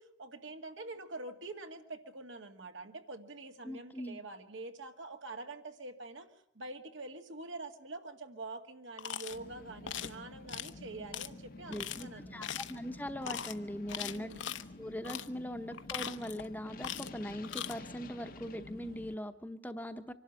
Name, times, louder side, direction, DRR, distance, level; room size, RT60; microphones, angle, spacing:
voice 1, 0.0-6.3 6.5-12.5 14.0-14.5, right 2 dB, 85° right, 5 dB, 2.1 m, -46 dB
voice 2, 3.6-4.2 11.7-14.3 14.8-20.1, equal, 10° left, 8 dB, 0.8 m, -41 dB
sound 1, 9.0-9.4 9.9-10.1 10.5-10.7 11.1-11.3 11.7-12.0 12.4-12.8 13.2-13.5 13.9-14.6 15.0-15.3 15.7-16.5 16.8-17.2 17.4-17.7, left 9 dB, 80° left, 0.9 m, -40 dB
sound 2, 9.3-19.1, left 2 dB, 45° left, 0.8 m, -50 dB
25.0 x 12.0 x 9.7 m, 0.75 s
head